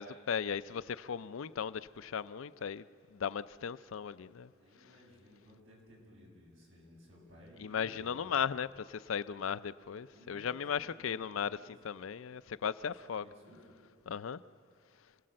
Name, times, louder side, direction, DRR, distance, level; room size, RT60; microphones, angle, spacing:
voice 1, 0.0-2.8 3.1-4.5 7.6-11.6 11.8-13.3 14.1-14.4, left 7 dB, 80° left, 0.5 m, -36 dB
voice 2, 4.4-8.4 10.1-11.7 13.1-13.6, left 1 dB, 70° right, 7.4 m, -58 dB
28.5 x 18.0 x 7.6 m
head